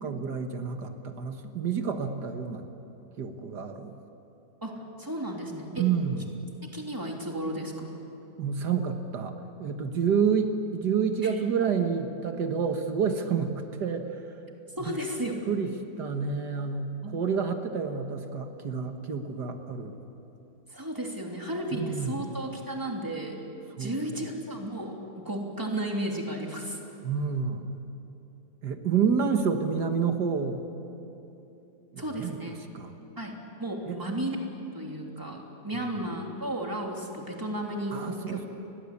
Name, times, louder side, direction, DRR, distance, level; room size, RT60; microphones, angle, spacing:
voice 1, 0.0-2.6 3.2-3.9 5.8-6.4 8.4-14.3 14.8-15.0 15.5-20.0 21.7-22.3 23.8-24.2 27.0-27.8 28.6-30.7 31.9-32.4 32.7-33.0 33.9-34.0 35.7-36.0 37.9-38.5, right 6 dB, 80° right, 6 dB, 2.1 m, -29 dB
voice 2, 4.6-5.9 6.6-8.0 11.2-11.3 14.8-15.5 17.0-17.5 20.7-23.4 23.8-26.8 32.0-32.6 33.2-34.4 34.7-38.5, right 1 dB, 10° right, 0 dB, 3.1 m, -34 dB
30.0 x 22.0 x 8.5 m, 2.9 s
omnidirectional pair, 1.7 m